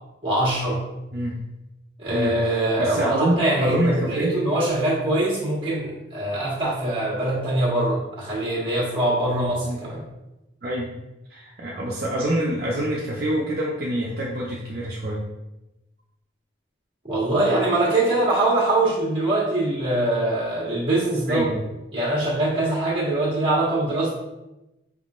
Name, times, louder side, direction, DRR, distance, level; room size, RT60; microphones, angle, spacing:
voice 1, 0.2-0.8 2.0-10.0 17.0-21.4 21.9-24.1, right 2 dB, 25° right, -7 dB, 1.5 m, -23 dB
voice 2, 2.1-4.4 9.3-9.8 10.6-11.0 11.3-15.2 21.3-21.6, right 1 dB, 55° right, -4 dB, 0.5 m, -26 dB
5.0 x 3.6 x 2.4 m, 0.97 s
head